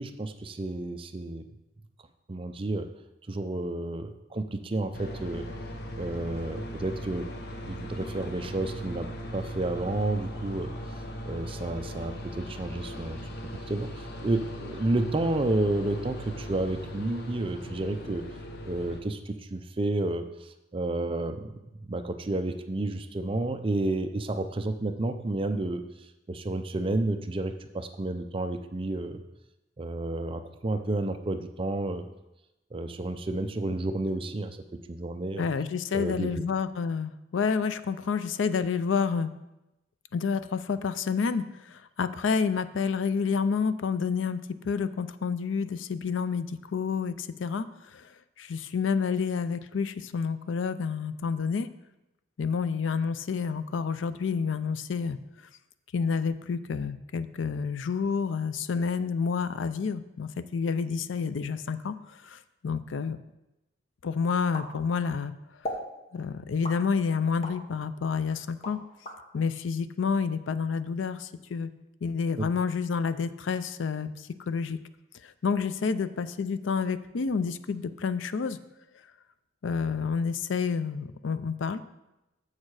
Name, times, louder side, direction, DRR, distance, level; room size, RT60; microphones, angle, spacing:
voice 1, 0.0-1.4 2.3-2.9 3.3-5.5 6.0-7.3 7.6-10.7 11.2-13.2 13.7-18.2 18.6-25.8 26.3-29.2 29.8-32.0 32.7-34.6 34.9-35.4 35.9-36.3, right 2 dB, 30° right, 8 dB, 0.5 m, -31 dB
sound 1, 4.9-19.0, equal, 55° left, 0.9 m, -39 dB
voice 2, 35.4-39.3 40.1-48.1 48.4-51.7 52.4-55.2 55.9-63.2 64.0-65.3 65.6-65.7 66.1-68.8 69.3-71.7 72.0-74.8 75.2-78.6 79.6-81.8, left 5 dB, 80° left, 13 dB, 0.4 m, -29 dB
sound 2, 64.5-65.2 65.6-65.9 66.6-67.6 68.1-69.2, left 1 dB, 35° left, 1.2 m, -37 dB
7.4 x 6.5 x 4.8 m, 0.94 s
head